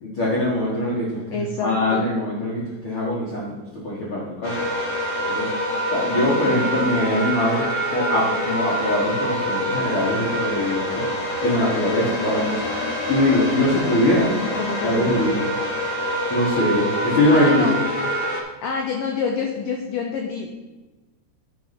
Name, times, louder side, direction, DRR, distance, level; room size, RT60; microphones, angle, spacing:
voice 1, 0.0-4.6 5.2-5.5 5.9-11.1 11.4-12.6 13.1-14.3 14.8-15.4 16.3-17.7, left 1 dB, 70° left, -6 dB, 1.2 m, -22 dB
voice 2, 1.3-2.1 6.1-6.9 12.2-12.6 14.6-15.1 17.3-17.7 18.6-20.5, left 5 dB, 85° left, 2 dB, 1.9 m, -27 dB
sound 1, 4.4-18.4, equal, 35° left, 1.2 m, -26 dB
10.5 x 4.1 x 5.8 m, 1.1 s
omnidirectional pair, 5.0 m